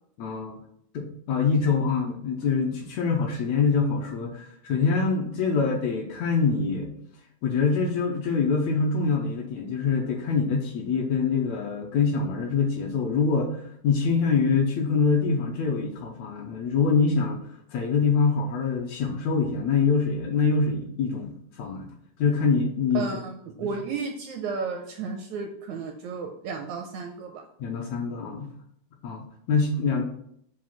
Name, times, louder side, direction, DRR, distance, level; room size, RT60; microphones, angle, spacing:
voice 1, 0.2-0.6 0.9-7.0 7.4-13.5 13.8-17.4 17.7-21.9 22.2-23.1 27.6-28.5 29.0-30.0, left 5 dB, 75° left, 0 dB, 1.8 m, -25 dB
voice 2, 22.9-27.4, right 5 dB, 80° right, 3 dB, 1.7 m, -33 dB
7.5 x 2.5 x 5.6 m, 0.71 s
omnidirectional pair, 3.7 m